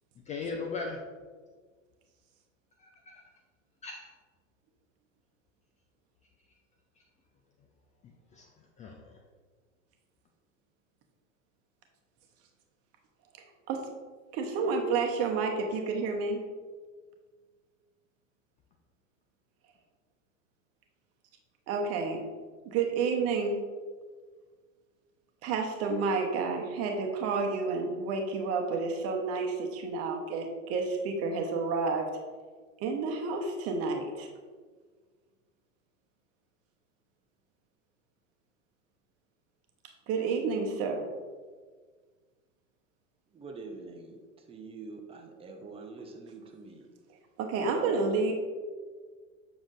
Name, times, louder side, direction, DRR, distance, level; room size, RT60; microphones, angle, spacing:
voice 1, 0.3-1.0 2.8-3.2 3.8-4.1 8.0-8.5 8.8-9.0, left 4 dB, 20° left, 2 dB, 0.4 m, -38 dB
voice 2, 14.3-16.4 21.7-22.3 22.6-23.6 25.4-32.1 32.8-34.3 40.1-41.0 47.4-48.3, right 4 dB, 40° right, 3 dB, 1.0 m, -30 dB
voice 3, 43.3-46.9 47.7-48.3, right 3 dB, 15° right, 3 dB, 0.8 m, -45 dB
7.3 x 6.1 x 2.5 m, 1.5 s
figure-of-eight pair, 90°, 39 cm